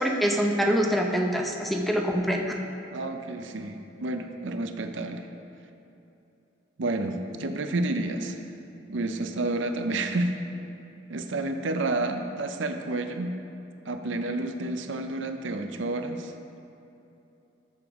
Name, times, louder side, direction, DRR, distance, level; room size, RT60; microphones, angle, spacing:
voice 1, 0.0-2.5, equal, ahead, 1 dB, 0.7 m, -25 dB
voice 2, 2.9-5.3 6.8-8.4 8.9-10.3 11.1-13.4 13.9-16.3, right 2 dB, 70° right, 6 dB, 0.6 m, -30 dB
13.5 x 7.0 x 3.6 m, 2.9 s
head